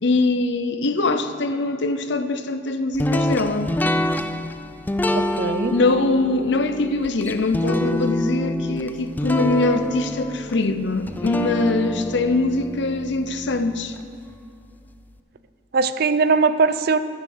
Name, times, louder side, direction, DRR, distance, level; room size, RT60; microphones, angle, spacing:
voice 1, 0.0-3.7 5.7-14.0, left 2 dB, 65° left, 0.7 m, -22 dB
sound 1, 3.0-14.0, left 1 dB, 10° left, 0.3 m, -26 dB
voice 2, 5.1-5.8 15.7-17.0, right 4 dB, 55° right, 0.5 m, -20 dB
9.8 x 8.9 x 6.6 m
head